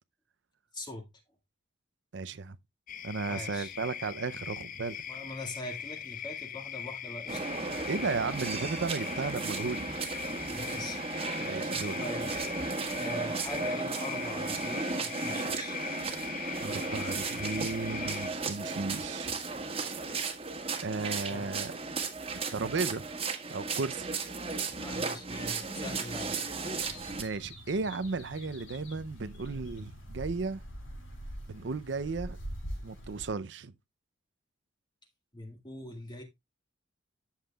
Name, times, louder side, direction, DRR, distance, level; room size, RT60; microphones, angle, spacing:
voice 1, 0.7-1.1 3.3-3.7 5.1-7.4 10.5-11.0 11.3-12.3 12.9-15.8 21.3-21.4 24.8-26.4 35.3-36.2, left 1 dB, 25° left, 2.0 m, -42 dB
voice 2, 2.1-2.6 3.0-5.0 7.9-9.9 11.4-12.0 16.6-19.3 20.8-21.7 22.5-23.1 23.5-24.1 27.2-30.6 31.5-32.4 32.8-33.7, right 4 dB, 65° right, 0.6 m, -34 dB
sound 1, 2.9-18.3, left 9 dB, 45° left, 0.6 m, -41 dB
sound 2, 7.3-27.2, right 4 dB, 30° right, 1.6 m, -35 dB
sound 3, 26.8-33.3, equal, 90° left, 4.3 m, -44 dB
11.0 x 7.3 x 2.3 m
head